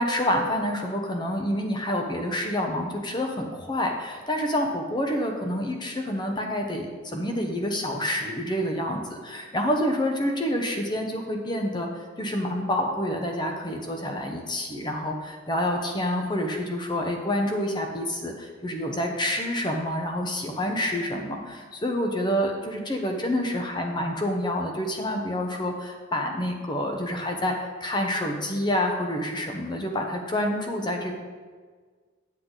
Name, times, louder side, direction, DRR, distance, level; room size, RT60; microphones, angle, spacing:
voice 1, 0.0-31.2, left 1 dB, 20° left, 2 dB, 0.9 m, -28 dB
8.4 x 7.9 x 3.9 m, 1.5 s
head